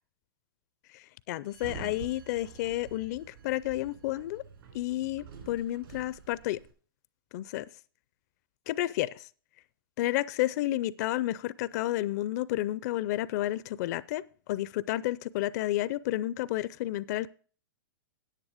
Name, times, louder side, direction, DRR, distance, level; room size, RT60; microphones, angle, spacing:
voice 1, 0.9-4.4 4.7-6.6 7.3-7.6 8.7-9.3 10.0-14.2 14.5-17.3, left 15 dB, 45° left, 19 dB, 0.5 m, -31 dB
Sliding door, 1.5-6.7, right 6 dB, 75° right, 4.2 m, -48 dB
10.0 x 8.6 x 4.9 m, 0.40 s
hypercardioid pair, 145°, 12 cm